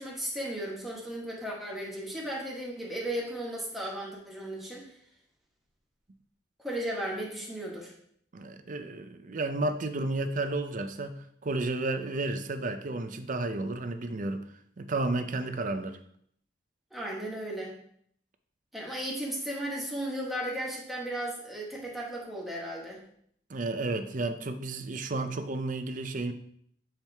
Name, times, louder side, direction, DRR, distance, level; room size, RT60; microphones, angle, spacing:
voice 1, 0.0-4.9 6.6-7.9 16.9-17.7 18.7-23.0, right 1 dB, ahead, -4 dB, 1.6 m, -35 dB
voice 2, 8.3-11.1 11.4-14.5 14.8-16.0 23.5-26.3, right 2 dB, 45° right, 8 dB, 0.6 m, -32 dB
7.4 x 4.5 x 3.4 m, 0.65 s
head